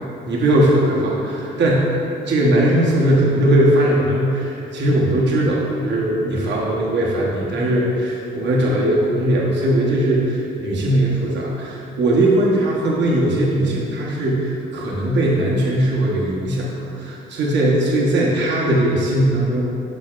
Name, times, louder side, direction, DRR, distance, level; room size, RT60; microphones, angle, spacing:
voice 1, 0.3-19.7, right 1 dB, 65° right, -4 dB, 1.0 m, -19 dB
6.8 x 6.3 x 2.4 m, 2.7 s
cardioid pair, 90°, 20 cm